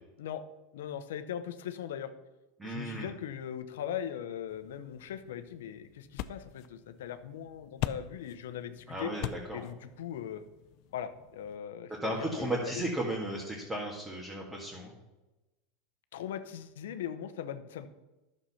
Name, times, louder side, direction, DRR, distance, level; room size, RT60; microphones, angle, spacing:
voice 1, 0.7-2.1 2.6-9.1 9.5-10.4 10.9-12.9 16.1-17.9, left 9 dB, 85° left, 10 dB, 0.8 m, -39 dB
voice 2, 2.6-3.1 8.9-9.6 12.0-14.9, right 1 dB, 10° right, -3 dB, 1.9 m, -35 dB
sound 1, 4.5-11.6, left 13 dB, 55° left, 0.5 m, -43 dB
10.5 x 6.6 x 5.7 m, 1.1 s
supercardioid pair, 125°, 0 cm